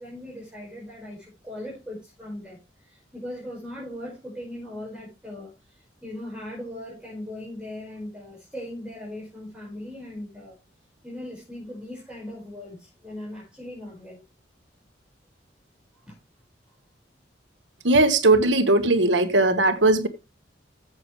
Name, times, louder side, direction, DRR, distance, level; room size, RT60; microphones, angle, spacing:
voice 1, 0.0-10.6 11.0-14.2 16.1-16.2, left 1 dB, 5° right, 5.3 m, -39 dB
voice 2, 17.8-20.1, right 2 dB, 80° right, 1.6 m, -19 dB
16.0 x 7.1 x 3.3 m
head